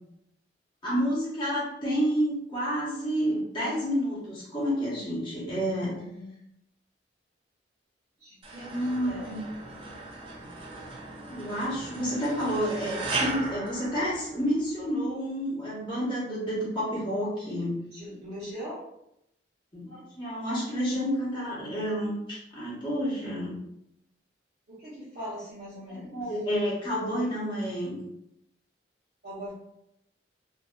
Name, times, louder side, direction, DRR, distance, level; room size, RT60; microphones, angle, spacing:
voice 1, 0.8-6.0 8.7-9.4 11.2-17.7 19.7-23.6 26.1-28.0, equal, 25° left, -8 dB, 1.0 m, -29 dB
voice 2, 5.7-6.3 8.2-8.8 9.1-9.4 15.9-16.1 17.9-18.9 24.7-26.2 29.2-29.5, equal, 60° right, -12 dB, 1.0 m, -41 dB
sound 1, 8.4-14.7, right 3 dB, 30° right, 0.5 m, -37 dB
2.6 x 2.4 x 2.3 m, 0.80 s
head